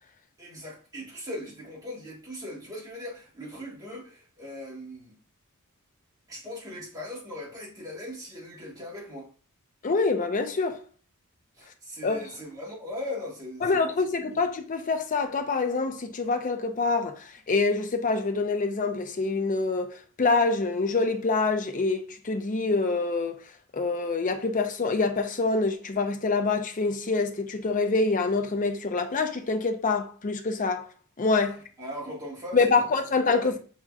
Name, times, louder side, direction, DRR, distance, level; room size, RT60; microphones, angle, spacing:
voice 1, 0.4-5.2 6.3-9.3 11.6-14.4 31.8-33.6, left 1 dB, 15° right, 1.6 m, -39 dB
voice 2, 9.8-10.8 12.0-12.3 13.6-23.4 23.7-30.8 31.2-31.6 32.5-33.6, left 3 dB, 35° left, 0.5 m, -26 dB
5.7 x 2.9 x 2.4 m
head